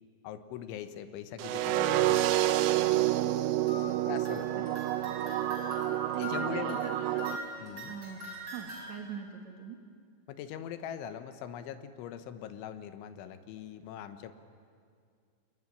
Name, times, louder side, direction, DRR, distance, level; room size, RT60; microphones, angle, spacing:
voice 1, 0.2-2.4 4.0-4.7 6.2-6.9 7.6-7.9 10.3-14.3, left 9 dB, 85° left, 9 dB, 3.5 m, -42 dB
sound 1, 1.4-7.4, right 14 dB, 85° right, 2.2 m, -29 dB
sound 2, 1.7-2.7 3.7-8.9, equal, 30° right, 5.6 m, -43 dB
voice 2, 5.9-7.4 7.8-9.8, right 7 dB, 55° right, 3 dB, 2.2 m, -43 dB
28.0 x 20.5 x 10.0 m, 2.2 s
omnidirectional pair, 5.4 m